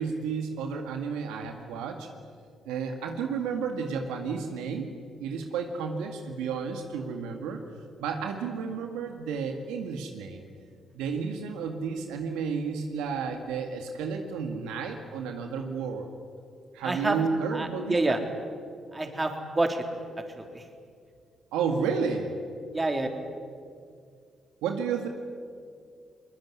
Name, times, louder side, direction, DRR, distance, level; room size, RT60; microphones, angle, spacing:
voice 1, 0.0-2.1 2.7-4.9 5.2-7.6 8.0-10.4 10.9-16.1 16.7-18.2 21.5-22.4 24.6-25.1, right 5 dB, 85° right, 4 dB, 1.9 m, -32 dB
voice 2, 16.8-17.2 17.5-18.2 18.9-19.8 20.4-20.6 22.7-23.1, right 2 dB, 25° right, 4 dB, 3.6 m, -28 dB
22.0 x 20.5 x 9.7 m, 2.2 s
supercardioid pair, 55°, 0 cm